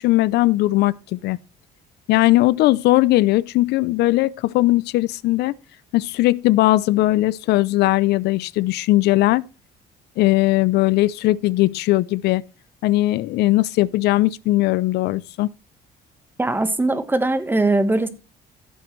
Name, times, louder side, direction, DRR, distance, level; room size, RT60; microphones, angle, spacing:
voice 1, 0.0-1.4 2.1-5.5 5.9-9.4 10.2-12.4 12.8-15.5, left 18 dB, 80° left, 0.5 m, -19 dB
voice 2, 16.4-18.1, right 2 dB, 10° right, 1.3 m, -20 dB
15.0 x 7.8 x 3.2 m
cardioid pair, 110°, 17 cm